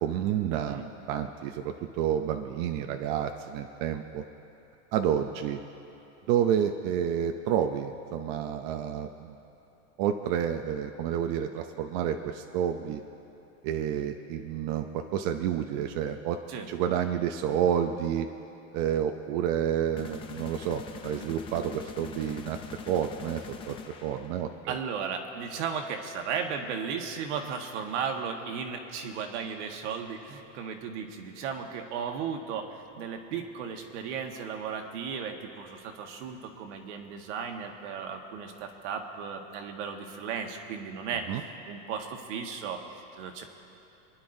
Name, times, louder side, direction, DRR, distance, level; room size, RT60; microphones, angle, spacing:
voice 1, 0.0-4.2 4.9-5.6 6.3-9.4 10.0-13.0 13.6-16.4 16.7-18.3 18.7-22.6 22.9-23.8 24.0-24.7 41.3-41.4, right 9 dB, 40° right, 6 dB, 0.5 m, -29 dB
voice 2, 0.5-0.9 16.5-16.7 24.7-43.4, right 6 dB, 65° right, 3 dB, 1.5 m, -35 dB
sound 1, 20.0-24.7, left 5 dB, 15° left, 0.4 m, -43 dB
28.5 x 10.5 x 2.7 m, 2.9 s
supercardioid pair, 160°, 38 cm